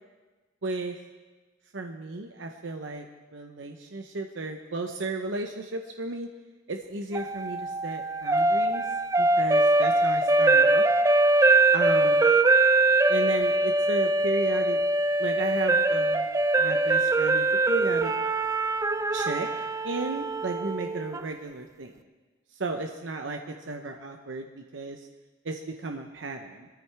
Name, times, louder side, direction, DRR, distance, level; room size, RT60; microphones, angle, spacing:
voice 1, 0.6-1.0 1.7-3.1 3.3-6.3 6.7-8.8 9.2-10.9 11.7-12.3 13.1-14.8 15.2-16.3 16.6-18.1 19.1-19.5 19.8-21.9 22.5-25.0 25.4-26.7, right 3 dB, 70° right, 4 dB, 0.8 m, -34 dB
sound 1, 7.1-21.2, right 2 dB, 15° right, 0.4 m, -23 dB
21.5 x 14.0 x 3.4 m, 1.3 s
head